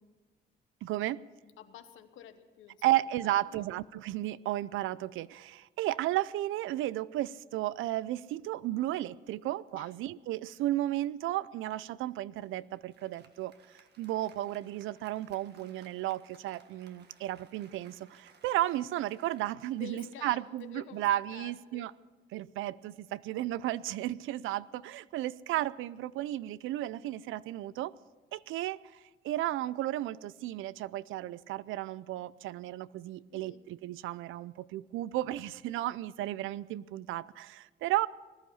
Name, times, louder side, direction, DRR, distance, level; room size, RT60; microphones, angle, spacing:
voice 1, 0.8-1.2 2.8-13.5 14.0-21.9 22.3-27.9 28.3-28.8 29.2-38.1, right 14 dB, 85° right, 0.4 m, -33 dB
voice 2, 1.6-3.7 9.7-9.9 19.7-21.9 33.3-33.6, left 9 dB, 80° left, 1.2 m, -50 dB
Applause, 12.4-22.2, right 5 dB, 60° right, 1.6 m, -62 dB
20.0 x 11.5 x 5.6 m
cardioid pair, 90°, 20 cm